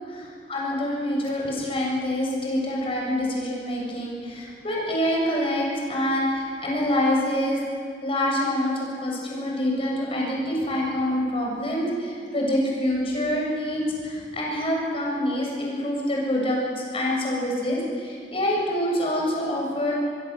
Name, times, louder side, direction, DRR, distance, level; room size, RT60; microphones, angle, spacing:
voice 1, 0.0-7.6 8.0-20.0, left 1 dB, 30° left, -2 dB, 7.4 m, -26 dB
24.0 x 23.5 x 7.6 m, 2.2 s
head